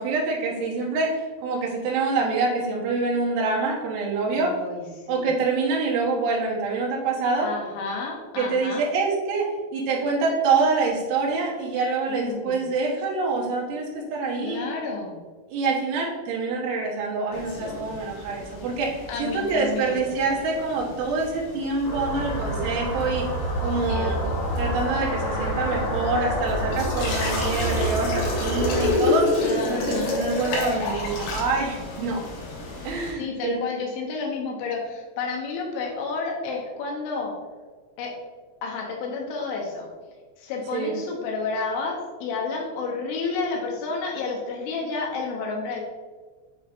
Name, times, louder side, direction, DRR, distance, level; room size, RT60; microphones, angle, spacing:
voice 1, 0.0-4.6 5.1-7.5 8.4-14.6 15.5-23.3 23.6-24.2 24.6-29.3 29.6-32.2 32.8-33.6 40.7-40.9, right 4 dB, 85° right, -3 dB, 3.6 m, -26 dB
voice 2, 4.3-5.3 7.4-8.8 12.1-12.6 14.4-15.2 19.1-20.1 23.9-24.4 29.4-30.2 33.1-37.4 38.0-38.2 38.6-39.9 40.4-45.8, left 4 dB, 90° left, -1 dB, 3.4 m, -31 dB
sound 1, 17.3-33.1, left 3 dB, 75° left, 3.4 m, -31 dB
sound 2, 21.8-28.9, equal, 55° left, 2.9 m, -27 dB
8.6 x 4.2 x 2.6 m, 1.4 s
omnidirectional pair, 5.3 m